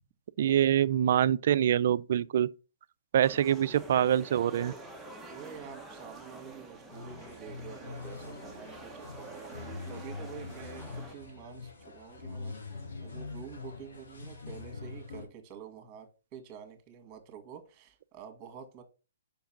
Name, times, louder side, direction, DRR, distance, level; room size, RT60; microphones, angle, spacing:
voice 1, 0.4-2.5 3.1-4.7, right 10 dB, 55° right, 0.4 m, -25 dB
sound 1, 3.2-11.2, right 2 dB, ahead, 1.0 m, -47 dB
voice 2, 5.3-18.8, right 8 dB, 25° right, 1.9 m, -48 dB
sound 2, 6.9-15.3, left 4 dB, 65° left, 3.0 m, -44 dB
5.3 x 4.6 x 5.9 m
hypercardioid pair, 140°, 0 cm